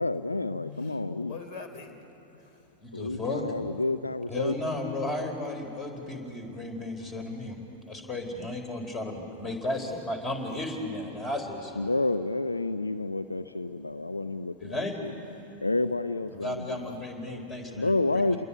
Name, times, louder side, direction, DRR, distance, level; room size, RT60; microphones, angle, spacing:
voice 1, 0.0-1.4 2.9-4.5 11.8-15.1 15.6-17.0 17.3-18.5, left 2 dB, 80° left, 12 dB, 0.5 m, -30 dB
voice 2, 1.2-2.6 15.4-15.6 16.3-17.0, left 5 dB, 45° left, 7 dB, 3.3 m, -46 dB
voice 3, 2.8-3.5 4.3-7.6 7.9-11.9 14.6-15.0 16.4-17.9, left 2 dB, 20° left, 5 dB, 4.4 m, -34 dB
29.0 x 21.5 x 9.3 m, 2.9 s
figure-of-eight pair, 90°, 0 cm